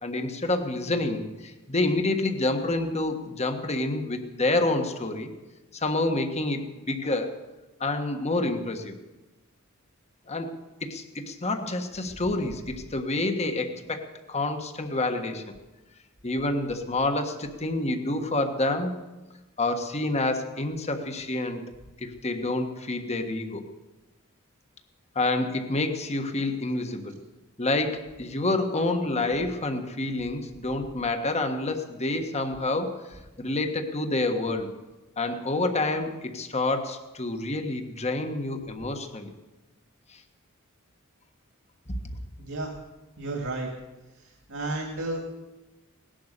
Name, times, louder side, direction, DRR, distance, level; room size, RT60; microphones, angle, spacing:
voice 1, 0.0-5.3 5.7-7.3 7.8-8.9 10.3-10.5 10.8-15.6 16.2-18.9 19.6-21.6 22.0-23.6 25.1-27.2 27.6-34.7 35.2-39.3 40.1-40.2, left 2 dB, 30° left, 6 dB, 1.5 m, -28 dB
voice 2, 42.4-42.7 43.2-43.7 44.2-45.2, right 2 dB, 65° right, 1 dB, 2.5 m, -32 dB
18.5 x 11.5 x 6.8 m, 1.1 s
head